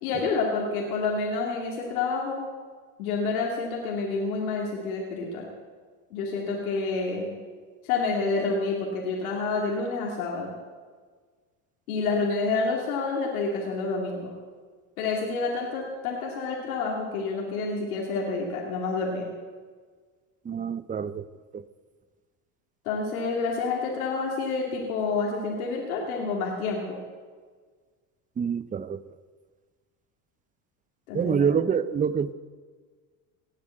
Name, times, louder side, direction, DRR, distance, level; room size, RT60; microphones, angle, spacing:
voice 1, 0.0-2.4 3.0-5.5 6.1-7.4 7.8-10.5 11.9-14.4 15.0-19.3 22.8-27.0 31.1-31.5, left 4 dB, 90° left, -2 dB, 2.6 m, -28 dB
voice 2, 20.4-21.3 21.5-21.6 28.4-29.0 31.1-32.3, right 7 dB, 20° right, 15 dB, 0.6 m, -26 dB
18.5 x 7.5 x 7.7 m, 1.5 s
supercardioid pair, 100°, 42 cm